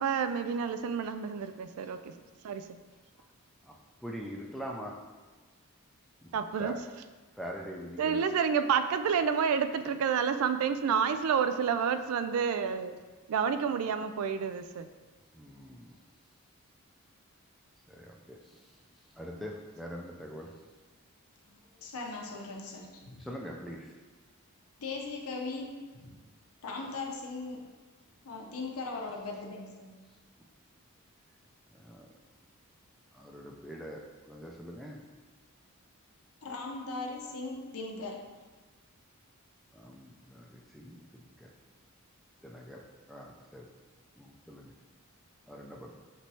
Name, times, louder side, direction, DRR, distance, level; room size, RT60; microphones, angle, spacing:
voice 1, 0.0-2.1 2.4-2.6 6.3-6.8 8.0-12.9 13.3-14.9, right 6 dB, 80° right, 9 dB, 0.3 m, -29 dB
voice 2, 3.6-5.0 6.2-6.3 6.6-6.8 7.3-8.4 15.3-16.0 17.9-20.6 23.2-23.9 31.7-32.1 33.1-35.0 39.7-41.5 42.4-42.8 43.1-43.7 44.2-44.7 45.5-45.9, equal, ahead, -2 dB, 0.3 m, -44 dB
voice 3, 21.5-23.3 24.8-26.2 26.6-27.6 28.2-29.9 36.4-38.2, left 3 dB, 90° left, 0 dB, 0.7 m, -39 dB
6.0 x 3.1 x 2.7 m, 1.3 s
head